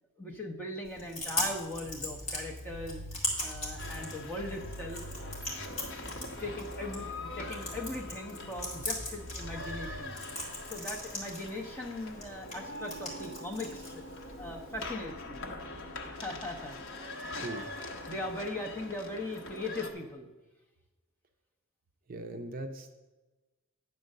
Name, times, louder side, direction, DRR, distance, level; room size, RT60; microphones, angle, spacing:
voice 1, 0.2-5.0 5.5-5.6 6.4-10.2 10.7-13.9 14.4-15.5 16.1-17.2 18.1-20.3, left 1 dB, 10° left, -1 dB, 0.9 m, -39 dB
Chewing mastication, 0.8-14.8, left 1 dB, 30° left, 2.3 m, -40 dB
sound 1, 1.7-5.6 6.0-8.2 8.6-10.0, equal, 20° right, 0.9 m, -45 dB
sound 2, 3.8-19.9, left 2 dB, 60° left, 1.0 m, -43 dB
voice 2, 17.4-17.7 22.1-22.9, right 1 dB, 40° right, 5 dB, 0.5 m, -40 dB
9.5 x 4.5 x 6.5 m, 1.2 s
head